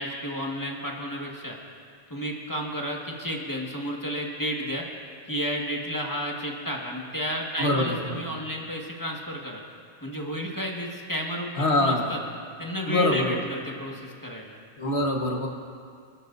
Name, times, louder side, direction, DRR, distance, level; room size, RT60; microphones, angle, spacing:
voice 1, 0.0-1.6 2.1-4.9 5.3-9.6 10.0-11.5 11.8-12.2 12.6-14.6, equal, 20° left, -2 dB, 1.8 m, -32 dB
voice 2, 7.6-8.2 11.6-12.2 12.9-13.4 14.8-15.5, left 1 dB, 80° left, 1 dB, 1.7 m, -24 dB
27.5 x 13.0 x 2.7 m, 2.2 s
omnidirectional pair, 1.1 m